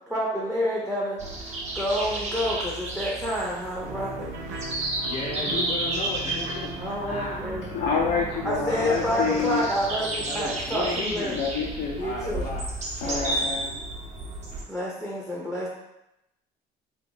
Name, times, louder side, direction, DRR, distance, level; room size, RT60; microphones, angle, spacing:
voice 1, 0.1-1.2 1.7-4.3 6.8-7.7 8.4-11.4 12.0-12.5 13.0-13.4 14.7-15.7, equal, ahead, -4 dB, 0.6 m, -29 dB
sound 1, 1.2-14.6, right 2 dB, 45° right, 0.9 m, -33 dB
sound 2, 3.8-12.2, right 3 dB, 75° right, 0.7 m, -39 dB
voice 2, 5.0-7.5 8.6-9.7 10.2-11.4 12.0-12.6, left 3 dB, 45° left, -2 dB, 0.6 m, -34 dB
voice 3, 7.7-9.6 11.3-12.0 13.0-13.8, left 5 dB, 85° left, -2 dB, 0.6 m, -28 dB
3.4 x 2.2 x 3.9 m, 0.89 s
cardioid pair, 110°, 17 cm